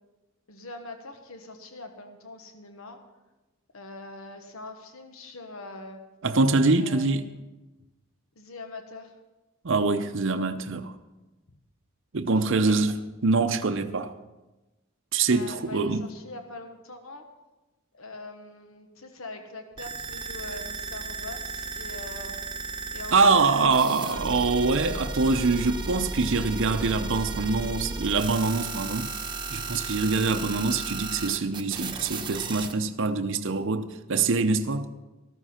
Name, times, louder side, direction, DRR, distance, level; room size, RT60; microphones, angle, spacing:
voice 1, 0.5-3.0 3.7-6.0 6.8-7.4 8.3-9.1 12.5-12.8 15.3-17.3 17.9-22.4 22.9-24.2, left 2 dB, 70° left, 1.3 m, -42 dB
voice 2, 6.2-7.3 9.6-10.9 12.1-12.9 13.2-14.1 15.1-16.0 23.1-29.1 29.5-34.9, right 3 dB, 60° right, 0.7 m, -24 dB
sound 1, 19.8-32.7, right 3 dB, 20° right, 1.0 m, -35 dB
14.0 x 13.5 x 4.4 m
head